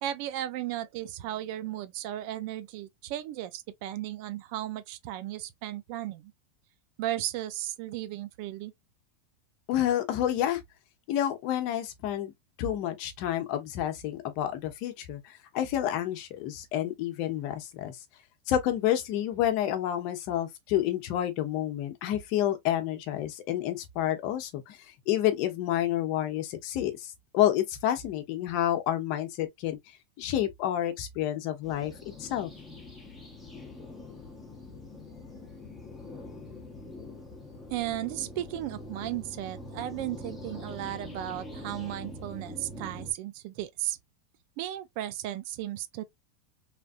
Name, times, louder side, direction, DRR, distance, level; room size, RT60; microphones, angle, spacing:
voice 1, 0.0-6.3 7.0-8.7 37.7-44.0 44.6-46.0, right 13 dB, 55° right, 0.6 m, -35 dB
voice 2, 9.7-10.6 11.1-12.3 12.6-18.0 18.5-29.8 30.2-31.9 32.2-32.5, left 12 dB, 55° left, 0.9 m, -29 dB
sound 1, 31.6-43.1, left 1 dB, 5° left, 1.3 m, -44 dB
3.3 x 2.6 x 2.4 m
supercardioid pair, 140°, 0 cm